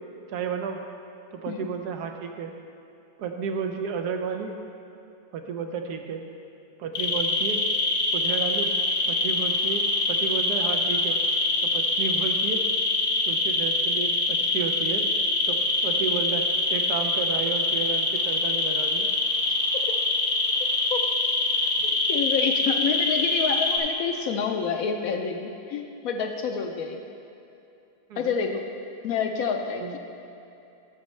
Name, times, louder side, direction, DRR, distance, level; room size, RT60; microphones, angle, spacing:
voice 1, 0.3-0.8 1.3-2.5 3.2-4.6 5.3-6.2 6.8-7.6 8.1-8.7 9.1-11.2 11.6-12.6 13.3-15.1 15.5-19.1 21.5-21.7 28.1-28.3 29.8-29.9, right 6 dB, 80° right, 5 dB, 1.2 m, -32 dB
sound 1, 6.9-23.8, left 2 dB, 90° left, 1.6 m, -24 dB
voice 2, 21.8-27.0 28.2-28.6 29.0-30.0, left 6 dB, 70° left, 5 dB, 0.9 m, -28 dB
11.5 x 7.1 x 3.1 m, 2.8 s
omnidirectional pair, 1.7 m